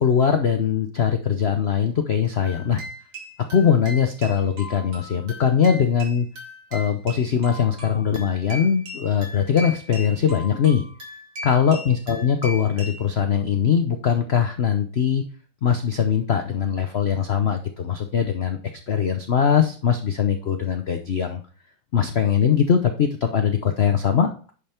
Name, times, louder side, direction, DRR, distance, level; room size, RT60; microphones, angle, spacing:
voice 1, 0.0-2.8 3.5-6.3 6.7-10.8 11.4-15.2 15.6-18.6 18.9-21.4 21.9-24.5, left 7 dB, 65° left, 6 dB, 0.6 m, -21 dB
sound 1, 2.4-13.0, left 1 dB, 75° right, 3.7 m, -38 dB
10.0 x 5.5 x 4.4 m, 0.40 s
omnidirectional pair, 2.2 m